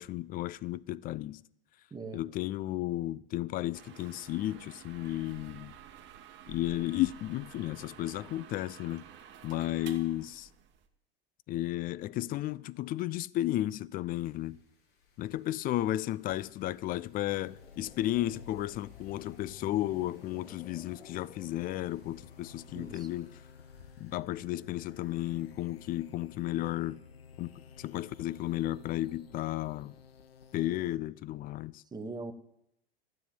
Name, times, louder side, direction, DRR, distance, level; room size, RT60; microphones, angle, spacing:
voice 1, 0.0-1.4 2.1-5.7 6.5-9.0 9.4-10.5 11.5-14.6 15.2-23.4 24.0-27.0 27.4-27.5 27.8-30.0 30.5-31.8, left 15 dB, 30° left, 0.4 m, -33 dB
voice 2, 1.9-2.2 22.7-23.1 31.9-32.3, right 3 dB, 15° right, 1.2 m, -40 dB
sound 1, 3.7-10.9, right 9 dB, 40° right, 1.5 m, -51 dB
Wind, 14.1-24.1, left 6 dB, 60° left, 5.0 m, -63 dB
sound 2, 17.2-31.0, left 6 dB, 80° left, 1.1 m, -53 dB
12.5 x 7.7 x 8.5 m
hypercardioid pair, 85°, 30 cm